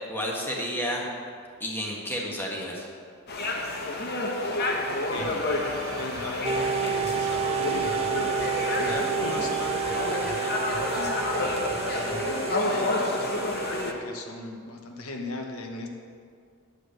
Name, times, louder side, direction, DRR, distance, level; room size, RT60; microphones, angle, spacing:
voice 1, 0.1-1.1 1.6-2.9, equal, 10° left, -2 dB, 1.4 m, -31 dB
sound 1, 3.3-13.9, left 2 dB, 50° left, 1.1 m, -29 dB
voice 2, 4.9-5.5 5.9-8.2 8.8-15.9, left 2 dB, 85° left, 3 dB, 1.1 m, -38 dB
sound 2, 5.2-12.5, right 3 dB, 90° right, 0.9 m, -41 dB
sound 3, 6.4-13.9, right 7 dB, 30° right, 0.4 m, -30 dB
10.5 x 5.0 x 7.7 m, 2.2 s
head